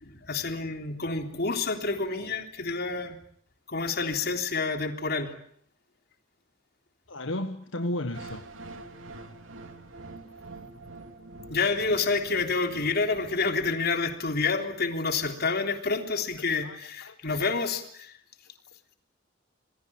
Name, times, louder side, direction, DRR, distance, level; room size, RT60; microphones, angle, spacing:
voice 1, 0.0-3.2 3.7-5.3 11.5-18.1, left 4 dB, 55° left, 5 dB, 3.6 m, -28 dB
voice 2, 7.1-8.4 16.5-17.3, left 1 dB, 80° left, 7 dB, 1.6 m, -34 dB
sound 1, 8.1-14.2, right 2 dB, 90° right, 2.9 m, -46 dB
27.5 x 20.5 x 8.9 m, 0.65 s
head